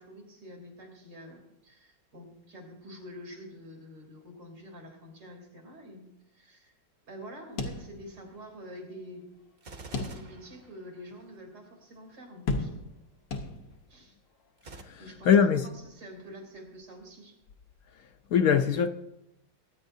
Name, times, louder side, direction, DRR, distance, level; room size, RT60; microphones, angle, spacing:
voice 1, 0.0-6.7 7.0-9.3 10.0-12.7 13.9-14.2 15.0-17.4, equal, 85° right, 3.9 m, -47 dB
sound 1, 7.6-8.4 8.8-8.9 9.9-10.6 11.1-11.2 12.5-13.0 13.3-14.0, left 3 dB, 85° left, 1.8 m, -34 dB
Gunshot gunfire, 9.6-11.4 14.6-14.8, right 3 dB, 40° right, 0.9 m, -47 dB
voice 2, 14.8-15.7 18.3-18.9, left 7 dB, 65° left, 0.9 m, -22 dB
22.0 x 9.9 x 2.7 m
omnidirectional pair, 1.9 m